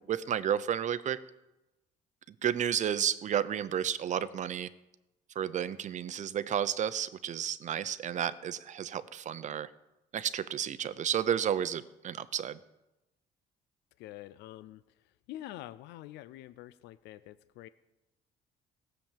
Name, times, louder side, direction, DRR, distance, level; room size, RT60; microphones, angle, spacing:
voice 1, 0.1-1.2 2.3-4.7 5.4-9.7 10.1-12.6, right 9 dB, 45° right, 15 dB, 0.7 m, -32 dB
voice 2, 14.0-17.7, left 14 dB, 85° left, 15 dB, 0.5 m, -47 dB
17.0 x 7.2 x 7.3 m, 0.97 s
cardioid pair, 110°, 17 cm